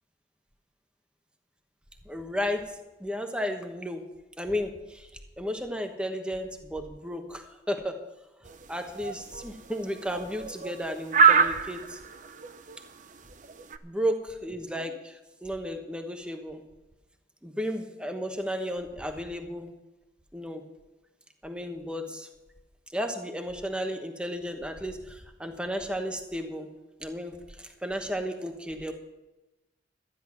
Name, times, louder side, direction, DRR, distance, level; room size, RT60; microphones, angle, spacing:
voice 1, 2.1-2.6 3.0-4.0 4.4-5.1 5.4-8.0 8.7-12.0 13.8-16.6 17.4-19.7 20.3-20.6 21.4-22.3 22.9-26.7 27.0-27.3 27.8-28.9, equal, 5° right, 5 dB, 1.1 m, -33 dB
sound 1, 8.5-13.8, right 6 dB, 45° right, 0.6 m, -25 dB
13.0 x 10.0 x 5.9 m, 1.0 s
head